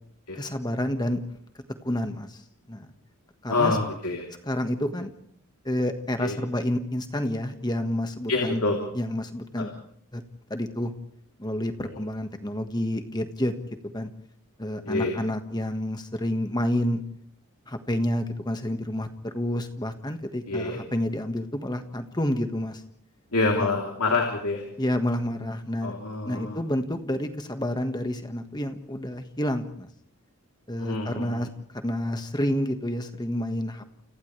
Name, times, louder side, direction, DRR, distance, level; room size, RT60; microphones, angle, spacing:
voice 1, 0.4-1.2 1.8-2.4 2.7-2.9 3.4-3.8 4.4-5.1 5.7-8.6 8.9-9.7 10.1-10.2 10.5-10.9 11.4-13.6 13.9-14.1 14.6-17.0 17.7-22.8 23.6-23.7 24.8-25.9 26.3-29.9 30.7-31.5 31.8-33.9, left 1 dB, 20° left, 7 dB, 1.6 m, -29 dB
voice 2, 3.5-4.3 6.2-6.3 8.3-8.8 9.6-9.7 11.8-12.0 14.8-15.1 20.5-20.8 23.3-24.7 25.8-26.6 30.8-31.5, left 3 dB, 90° left, 1 dB, 3.5 m, -27 dB
30.0 x 29.0 x 3.4 m, 0.63 s
head